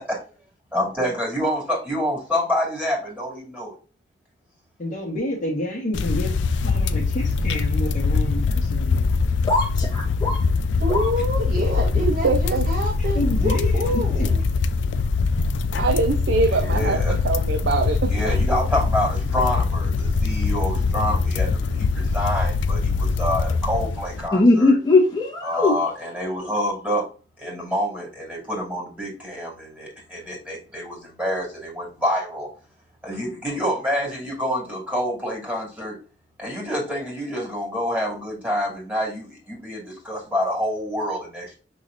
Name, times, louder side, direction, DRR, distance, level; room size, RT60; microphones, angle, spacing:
voice 1, 0.7-3.7 16.6-17.1 18.1-24.8 25.4-27.1 27.4-32.5 33.0-36.0 36.4-41.5, equal, 10° right, 2.4 m, -27 dB
voice 2, 4.8-6.3 6.6-9.1 13.0-14.3, equal, 45° left, 1.4 m, -29 dB
sound 1, 5.9-24.3, left 4 dB, 80° left, 0.4 m, -23 dB
voice 3, 9.5-10.4 10.9-11.1 24.3-25.7, left 2 dB, 20° left, 1.3 m, -19 dB
voice 4, 10.8-14.4, equal, 50° right, 1.2 m, -27 dB
voice 5, 12.0-12.7 15.8-18.0, right 3 dB, 75° right, 0.6 m, -23 dB
6.0 x 3.2 x 2.5 m
head